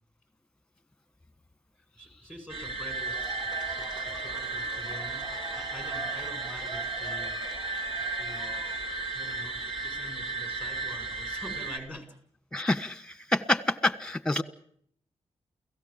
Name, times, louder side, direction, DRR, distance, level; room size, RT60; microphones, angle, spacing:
voice 1, 1.9-5.3 5.5-7.4 8.0-8.6 9.1-12.1, equal, 15° right, 6 dB, 7.4 m, -46 dB
sound 1, 2.5-11.8, right 3 dB, 65° right, 3.6 m, -34 dB
Cheering / Applause / Crowd, 2.9-9.7, right 1 dB, 40° right, 5.1 m, -44 dB
voice 2, 12.5-14.4, left 1 dB, 10° left, 13 dB, 1.5 m, -27 dB
29.5 x 17.5 x 7.5 m, 0.66 s
cardioid pair, 95°, 11 cm